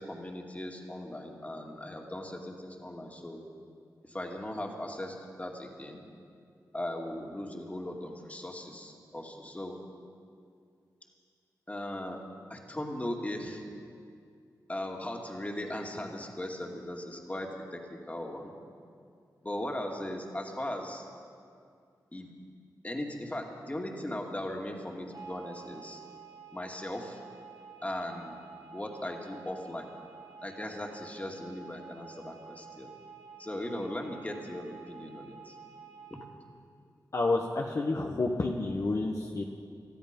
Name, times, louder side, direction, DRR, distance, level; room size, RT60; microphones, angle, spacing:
voice 1, 0.0-3.4 4.0-6.0 6.7-9.8 11.7-12.2 12.5-13.6 14.7-18.5 19.4-21.1 22.1-22.3 22.8-26.0 26.5-27.2 27.8-28.4 28.7-29.9 30.4-32.9 33.4-35.6, left 1 dB, 20° left, 1 dB, 2.4 m, -38 dB
sound 1, 25.1-36.3, right 6 dB, 65° right, 1.7 m, -50 dB
voice 2, 37.1-39.4, left 2 dB, 50° left, 1 dB, 1.2 m, -29 dB
20.0 x 13.0 x 5.4 m, 2.3 s
cardioid pair, 55°, 7 cm